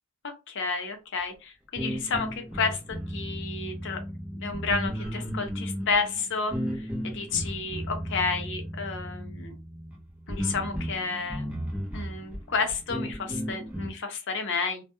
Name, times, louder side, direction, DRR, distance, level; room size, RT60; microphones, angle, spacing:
voice 1, 0.2-2.8 3.1-4.0 4.4-9.6 10.3-11.5 11.9-14.8, left 4 dB, 55° left, 5 dB, 0.6 m, -31 dB
sound 1, 1.8-13.9, equal, 5° right, 0.5 m, -35 dB
2.2 x 2.1 x 2.9 m, 0.28 s
head